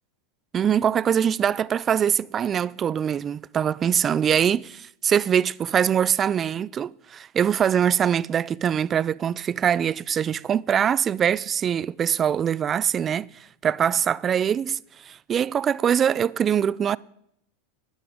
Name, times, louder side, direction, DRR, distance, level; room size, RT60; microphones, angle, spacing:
voice 1, 0.5-13.3 13.6-17.0, right 8 dB, 30° right, 0.3 m, -23 dB
12.5 x 9.5 x 5.0 m
hypercardioid pair, 100°, 0 cm